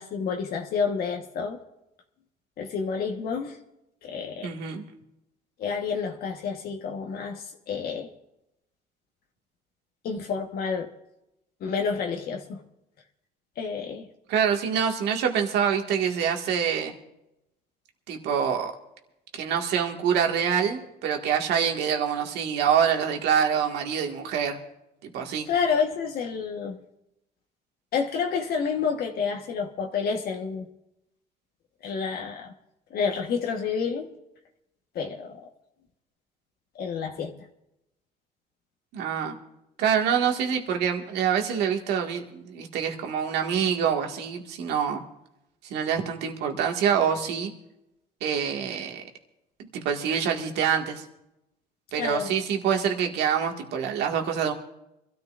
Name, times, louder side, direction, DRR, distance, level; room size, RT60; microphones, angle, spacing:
voice 1, 0.0-1.6 2.6-3.6 4.0-4.5 5.6-8.1 10.0-10.9 11.6-12.6 13.6-14.1 25.5-26.8 27.9-30.7 31.8-32.5 32.9-34.1 34.9-35.5 36.7-37.3 52.0-52.3, left 6 dB, 65° left, 1.3 m, -29 dB
voice 2, 4.4-4.8 14.3-16.9 18.1-18.7 19.3-24.6 25.0-25.5 38.9-39.4 39.8-45.0 45.7-47.5 48.2-49.0 49.7-51.0 51.9-54.5, right 7 dB, 80° right, 1.9 m, -26 dB
26.0 x 13.5 x 2.5 m
cardioid pair, 110°, 17 cm